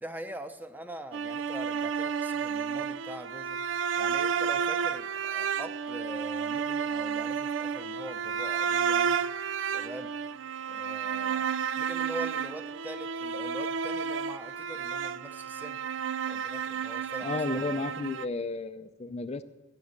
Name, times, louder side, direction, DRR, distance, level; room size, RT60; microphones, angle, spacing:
voice 1, 0.0-3.6 4.0-9.2 9.7-10.1 10.7-15.8 16.3-17.6, right 1 dB, 10° right, 8 dB, 0.8 m, -43 dB
sound 1, 1.1-18.3, right 7 dB, 85° right, 0.4 m, -31 dB
voice 2, 17.2-19.4, left 3 dB, 35° left, 10 dB, 0.4 m, -33 dB
16.5 x 10.0 x 6.6 m, 1.1 s
head